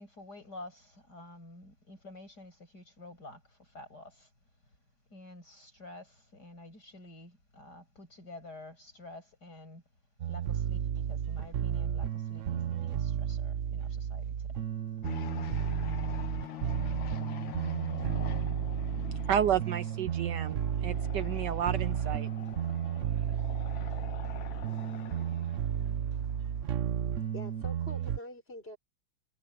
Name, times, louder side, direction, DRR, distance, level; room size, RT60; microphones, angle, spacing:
voice 1, 0.0-4.3 5.1-9.8 10.3-14.6 15.4-15.7, left 2 dB, 55° left, 8.8 m, -50 dB
sound 1, 10.2-28.2, right 9 dB, 50° right, 1.0 m, -33 dB
sound 2, 15.0-27.1, left 11 dB, 80° left, 2.0 m, -44 dB
voice 2, 19.3-22.3, right 9 dB, 70° right, 1.2 m, -31 dB
voice 3, 27.3-28.8, left 1 dB, 30° left, 6.2 m, -45 dB
omnidirectional pair, 2.1 m